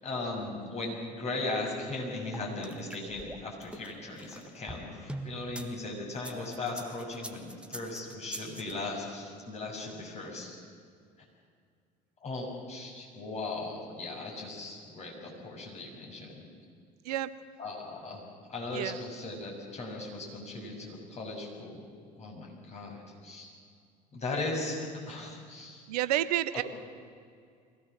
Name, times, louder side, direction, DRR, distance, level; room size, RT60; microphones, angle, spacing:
voice 1, 0.0-10.6 12.2-16.4 17.6-21.8 22.2-23.5 24.1-25.9, left 2 dB, 30° left, -1 dB, 6.8 m, -38 dB
sound 1, 2.3-5.7 6.1-8.7, right 1 dB, 5° right, 1.7 m, -43 dB
voice 2, 25.9-26.6, right 13 dB, 65° right, 14 dB, 0.8 m, -29 dB
23.0 x 17.5 x 7.5 m, 2.2 s
figure-of-eight pair, 65°, 21 cm